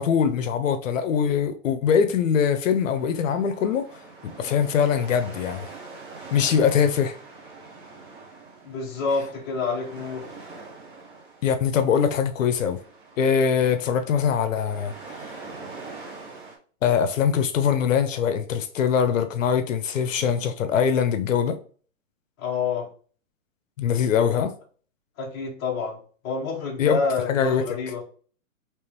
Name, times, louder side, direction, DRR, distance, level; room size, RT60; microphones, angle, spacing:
voice 1, 0.0-3.9 4.2-5.7 6.3-7.2 11.4-12.8 13.2-14.9 16.8-21.6 23.8-24.5 26.8-27.0 27.3-27.6, left 7 dB, 65° left, 0.6 m, -22 dB
sound 1, 2.7-16.6, right 3 dB, 35° right, 1.1 m, -44 dB
voice 2, 8.6-10.3 22.4-22.9 25.2-26.0 26.2-28.0, left 4 dB, 15° left, 0.7 m, -28 dB
3.5 x 3.0 x 3.1 m
hypercardioid pair, 170°, 41 cm